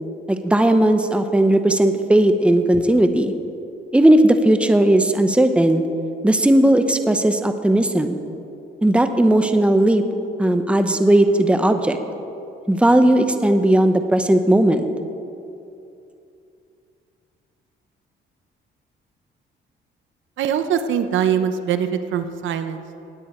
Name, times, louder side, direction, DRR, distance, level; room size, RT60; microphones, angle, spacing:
voice 1, 0.3-3.3 3.9-5.8 6.2-8.2 8.8-10.0 10.4-12.0 12.7-14.8, right 1 dB, 5° right, 8 dB, 0.8 m, -16 dB
voice 2, 20.4-22.8, right 8 dB, 75° right, 10 dB, 0.7 m, -22 dB
17.0 x 9.4 x 4.4 m, 2.7 s
cardioid pair, 90°, 20 cm